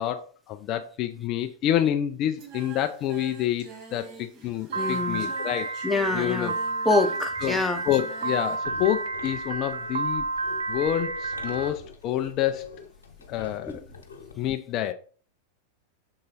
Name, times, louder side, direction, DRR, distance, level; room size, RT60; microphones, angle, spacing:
voice 1, 0.0-5.7 6.1-6.6 7.4-10.2 10.7-12.8 13.3-13.8 14.4-14.9, left 11 dB, 35° left, 0.5 m, -28 dB
Singing, 2.4-8.6, right 6 dB, 35° right, 2.2 m, -46 dB
voice 2, 4.7-5.3 5.8-6.5 6.8-7.8 13.7-13.8, left 2 dB, 5° left, 0.8 m, -26 dB
Piano, 4.7-11.7, right 3 dB, 65° right, 0.5 m, -31 dB
sound 1, 8.6-14.4, left 5 dB, 70° left, 1.1 m, -46 dB
6.5 x 3.8 x 4.1 m
figure-of-eight pair, 90°, 0 cm